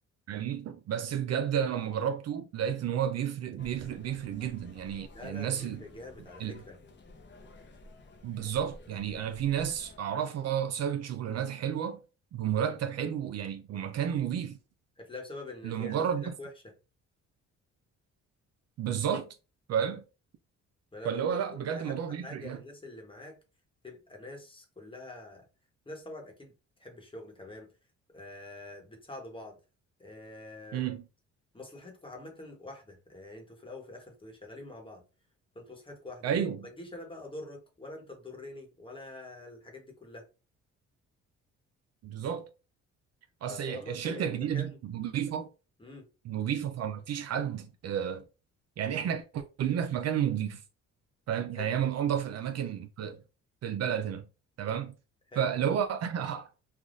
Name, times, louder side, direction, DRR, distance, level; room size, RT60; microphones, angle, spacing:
voice 1, 0.3-5.8 6.4-6.6 8.2-12.0 12.3-14.6 15.6-16.3 18.8-19.3 19.7-20.0 21.0-22.6 30.7-31.0 36.2-36.7 42.0-42.5 43.4-45.5 46.3-48.2 48.8-50.6 51.3-53.2 53.6-54.2 54.6-54.9 55.4-56.5, right 9 dB, 60° right, 0.5 m, -31 dB
sound 1, 3.6-10.0, left 2 dB, 40° left, 0.7 m, -52 dB
voice 2, 5.1-6.8 15.0-16.7 20.9-23.4 23.8-25.5 25.8-26.5 26.8-27.7 28.1-29.6 30.0-30.9 31.5-35.0 35.5-36.3 36.6-40.3 43.5-44.7 45.8-46.1 51.6-51.7 55.3-55.5, left 2 dB, 15° left, 1.1 m, -45 dB
3.4 x 2.3 x 2.5 m
cardioid pair, 90°, 30 cm